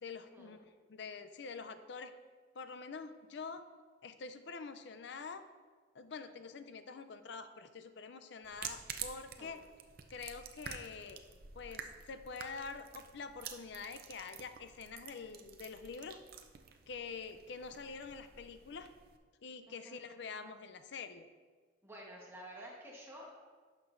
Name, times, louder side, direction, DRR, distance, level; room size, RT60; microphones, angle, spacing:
voice 1, 0.0-2.1 2.5-3.6 4.0-5.4 5.9-9.6 10.1-11.2 11.5-16.2 16.9-18.9 19.4-21.3, left 5 dB, 70° left, 10 dB, 0.5 m, -46 dB
sound 1, 8.4-19.2, right 7 dB, 55° right, 0.5 m, -49 dB
voice 2, 19.7-20.0 21.8-23.3, right 1 dB, 15° right, -3 dB, 1.2 m, -51 dB
11.5 x 6.0 x 2.6 m, 1.5 s
head